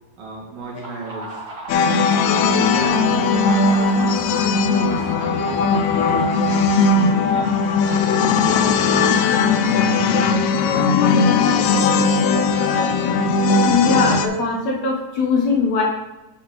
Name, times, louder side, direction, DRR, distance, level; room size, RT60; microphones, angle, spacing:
voice 1, 0.2-1.4 2.2-3.7 4.3-6.3 6.9-7.6 8.6-10.4 10.7-12.0, right 3 dB, 75° right, -4 dB, 3.6 m, -35 dB
sound 1, 0.7-11.0, right 2 dB, 40° right, 3.6 m, -35 dB
sound 2, 1.7-14.3, left 4 dB, 85° left, 1.7 m, -18 dB
sound 3, 2.6-5.0, right 2 dB, 60° right, 1.9 m, -34 dB
voice 2, 13.7-15.8, left 5 dB, 65° left, -1 dB, 2.1 m, -21 dB
9.5 x 5.7 x 4.1 m, 1.0 s
omnidirectional pair, 3.9 m